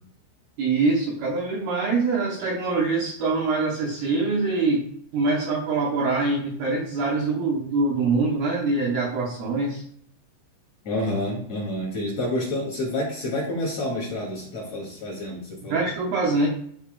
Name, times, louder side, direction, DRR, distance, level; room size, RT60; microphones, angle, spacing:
voice 1, 0.6-9.8 15.7-16.5, right 3 dB, 90° right, -3 dB, 2.1 m, -24 dB
voice 2, 10.8-15.8, left 1 dB, 40° left, -5 dB, 2.8 m, -28 dB
12.0 x 4.6 x 2.3 m, 0.65 s
omnidirectional pair, 5.6 m